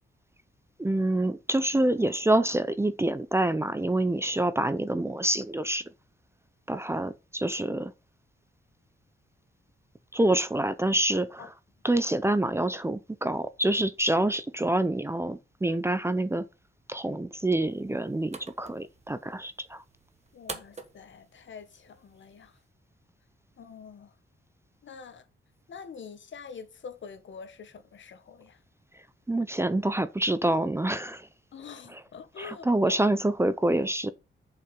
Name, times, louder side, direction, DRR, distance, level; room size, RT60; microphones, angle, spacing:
voice 1, 0.8-5.8 6.7-7.9 10.1-11.5 11.8-16.4 16.9-19.8 29.3-31.3 31.9-32.0 32.4-34.1, right 1 dB, 10° right, 0.5 m, -27 dB
sound 1, 17.6-22.7, right 4 dB, 30° right, 1.3 m, -47 dB
voice 2, 20.3-22.6 23.6-24.1 24.8-25.2 25.7-28.6 31.5-33.0, left 6 dB, 65° left, 1.3 m, -45 dB
7.0 x 5.7 x 5.3 m
wide cardioid pair, 125°, 21 cm